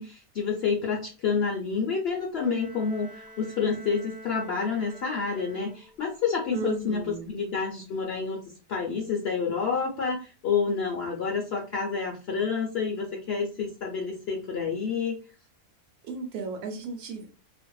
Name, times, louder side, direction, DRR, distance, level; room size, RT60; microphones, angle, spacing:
voice 1, 0.0-8.4 8.7-15.2, left 5 dB, 70° left, -1 dB, 0.6 m, -29 dB
Bowed string instrument, 2.4-6.2, right 1 dB, 40° right, 0.8 m, -48 dB
voice 2, 6.5-7.3 16.0-17.3, right 3 dB, 90° right, 4 dB, 1.2 m, -34 dB
2.5 x 2.5 x 2.2 m, 0.33 s
omnidirectional pair, 1.6 m